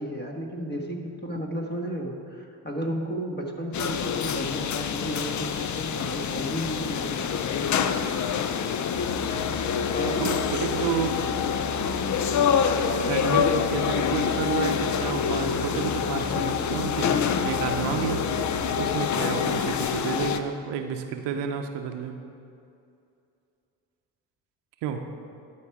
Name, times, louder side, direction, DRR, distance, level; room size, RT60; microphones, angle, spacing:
voice 1, 0.0-7.7 9.9-10.4, equal, 25° left, 1 dB, 1.5 m, -33 dB
sound 1, 3.7-20.4, left 7 dB, 45° left, 0.6 m, -26 dB
sound 2, 8.9-19.0, right 10 dB, 45° right, 0.7 m, -40 dB
voice 2, 10.0-11.2 13.0-17.2 17.4-18.2 18.8-22.1 24.8-25.0, right 7 dB, 75° right, 5 dB, 0.8 m, -30 dB
12.0 x 4.8 x 4.8 m, 2.5 s
supercardioid pair, 60°, 43 cm